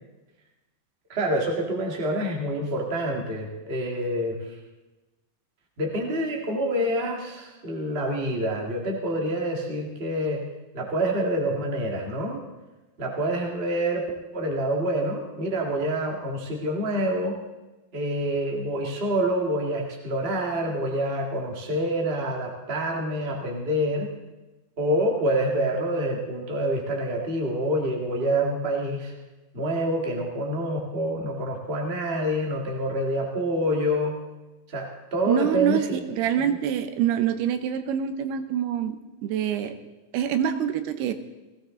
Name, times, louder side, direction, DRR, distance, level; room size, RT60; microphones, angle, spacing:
voice 1, 1.1-4.6 5.8-10.4 10.7-12.4 13.0-14.1 14.3-17.4 17.9-24.1 24.8-29.1 29.5-34.2 34.7-36.0, right 1 dB, 25° right, 0 dB, 1.3 m, -27 dB
voice 2, 35.3-39.7 40.1-41.1, right 9 dB, 85° right, 9 dB, 2.9 m, -25 dB
18.5 x 16.0 x 3.8 m, 1.1 s
omnidirectional pair, 4.5 m